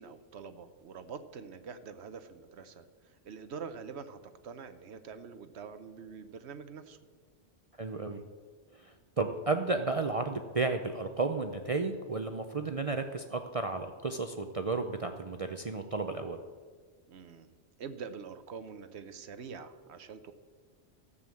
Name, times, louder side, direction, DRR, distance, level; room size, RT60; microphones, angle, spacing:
voice 1, 0.0-7.0 17.1-17.5 17.8-20.3, right 6 dB, 70° right, 11 dB, 1.0 m, -45 dB
voice 2, 7.8-8.2 8.7-16.4, right 3 dB, 40° right, 6 dB, 0.5 m, -33 dB
13.5 x 7.3 x 7.6 m, 1.6 s
omnidirectional pair, 1.2 m